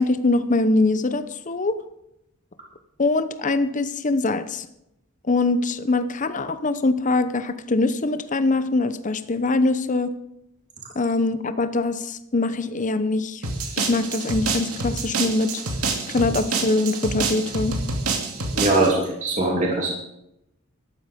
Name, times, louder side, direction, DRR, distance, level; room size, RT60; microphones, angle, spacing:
voice 1, 0.0-1.7 3.0-4.7 5.3-10.1 10.9-13.4 13.8-15.5 16.1-17.8, left 2 dB, 35° left, 12 dB, 0.8 m, -23 dB
sound 1, 13.4-18.9, right 3 dB, 85° right, 2.4 m, -27 dB
voice 2, 18.5-19.9, right 2 dB, 35° right, -2 dB, 3.1 m, -21 dB
13.0 x 11.5 x 5.2 m, 0.83 s
head